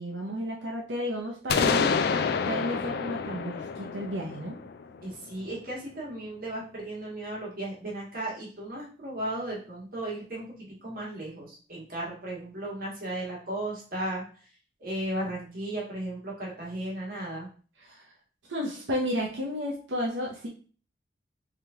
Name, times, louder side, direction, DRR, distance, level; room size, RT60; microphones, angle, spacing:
voice 1, 0.0-2.0 2.4-4.6 17.8-18.1 18.5-20.5, equal, 90° right, -2 dB, 0.7 m, -32 dB
sound 1, 1.5-5.3, left 5 dB, 55° left, 0.3 m, -28 dB
voice 2, 5.0-10.5 10.8-14.2 14.8-17.5, right 1 dB, 50° right, -4 dB, 1.7 m, -35 dB
3.5 x 2.9 x 3.5 m, 0.40 s
head